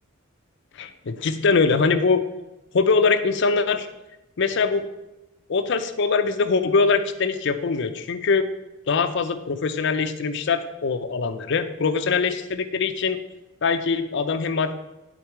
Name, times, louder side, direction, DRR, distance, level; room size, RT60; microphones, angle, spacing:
voice 1, 0.7-2.2 2.7-3.9 4.4-4.8 5.5-8.5 8.9-13.2 13.6-14.8, left 4 dB, 60° left, 9 dB, 0.5 m, -22 dB
8.8 x 4.0 x 4.5 m, 0.97 s
head